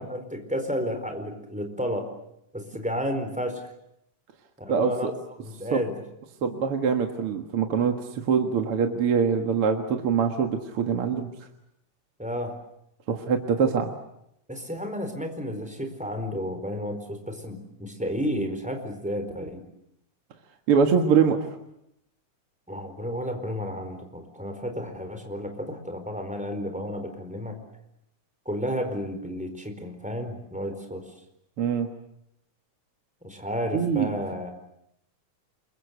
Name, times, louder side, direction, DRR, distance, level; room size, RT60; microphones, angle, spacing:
voice 1, 0.0-2.1 2.5-3.6 4.6-5.1 5.4-5.9 12.2-12.6 14.5-19.6 22.7-27.6 28.4-31.0 33.2-34.5, equal, ahead, 5 dB, 4.1 m, -32 dB
voice 2, 4.7-5.1 5.7-5.8 6.4-11.3 13.1-13.9 20.7-21.4 31.6-31.9 33.7-34.2, right 6 dB, 50° right, 4 dB, 2.3 m, -23 dB
28.5 x 23.0 x 8.3 m, 0.78 s
omnidirectional pair, 3.7 m